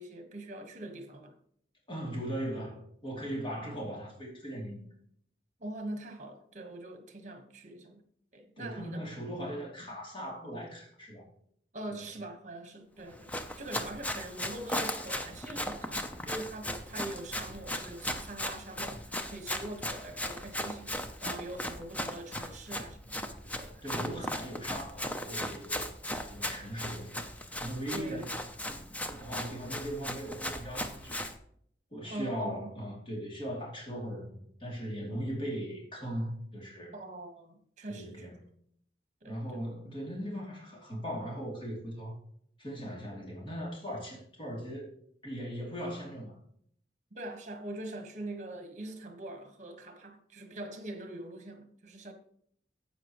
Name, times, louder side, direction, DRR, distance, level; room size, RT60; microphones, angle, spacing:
voice 1, 0.0-1.3 5.6-8.0 8.3-9.0 11.7-20.9 21.2-23.1 23.4-24.3 27.9-28.3 32.1-32.7 36.9-38.3 39.2-39.6 47.1-52.1, right 1 dB, 45° right, 1.5 m, -43 dB
voice 2, 1.9-4.8 8.6-11.2 11.9-12.0 23.8-25.9 26.3-27.3 27.6-28.3 28.7-31.2 31.9-36.9 37.9-38.5 39.3-42.1 42.6-44.9 45.2-46.4, equal, 30° left, 3.0 m, -39 dB
Run, 13.1-31.4, left 1 dB, 10° left, 0.7 m, -37 dB
12.0 x 8.5 x 3.1 m
head